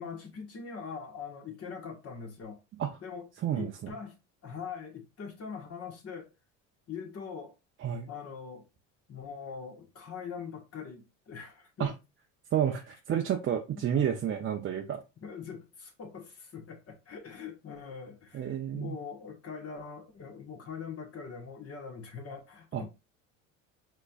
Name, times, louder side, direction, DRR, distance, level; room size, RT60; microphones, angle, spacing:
voice 1, 0.0-2.6 3.0-4.2 4.4-6.3 6.9-7.5 8.1-8.7 9.1-11.9 13.9-14.3 15.2-22.9, left 6 dB, 35° left, 1.4 m, -42 dB
voice 2, 12.5-15.0 18.3-19.0 22.7-22.8, right 9 dB, 30° right, 0.6 m, -30 dB
4.8 x 3.0 x 2.4 m
hypercardioid pair, 75°, 40 cm